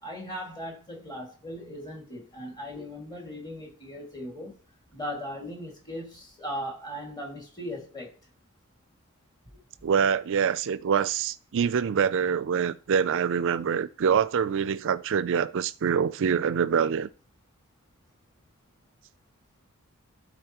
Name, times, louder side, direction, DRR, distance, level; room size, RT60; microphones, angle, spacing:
voice 1, 0.0-4.5 4.9-8.1, equal, 20° left, 2.1 m, -38 dB
voice 2, 9.8-17.1, right 7 dB, 60° right, 0.4 m, -25 dB
12.0 x 4.2 x 2.9 m
head